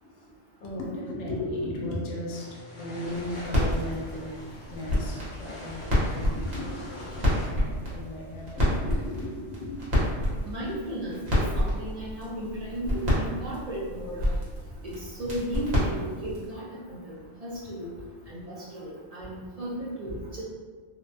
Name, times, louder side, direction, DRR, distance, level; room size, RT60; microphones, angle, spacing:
voice 1, 0.0-4.4 4.7-9.8, left 1 dB, 75° left, -3 dB, 0.9 m, -36 dB
sound 1, 2.3-7.5, left 1 dB, 50° left, 0.6 m, -44 dB
sound 2, 3.1-16.5, left 1 dB, 60° right, 1.1 m, -29 dB
voice 2, 10.4-14.3 14.8-17.1 17.4-17.9 18.3-20.4, right 1 dB, 45° right, -7 dB, 0.5 m, -35 dB
2.6 x 2.2 x 2.6 m, 1.5 s
omnidirectional pair, 1.2 m